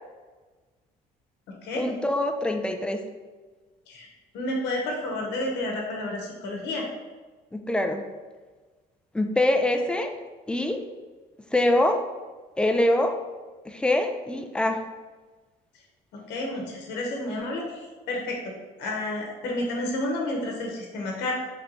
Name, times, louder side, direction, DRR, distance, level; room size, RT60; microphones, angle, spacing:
voice 1, 1.7-3.0 7.5-8.0 9.1-10.1 10.5-10.8 11.5-12.0 12.6-13.2 13.7-14.8, left 1 dB, 5° left, 5 dB, 0.4 m, -24 dB
voice 2, 4.3-6.8 16.1-18.5 18.8-21.3, left 1 dB, 85° left, -1 dB, 0.9 m, -30 dB
3.4 x 3.0 x 3.8 m, 1.3 s
cardioid pair, 110°, 17 cm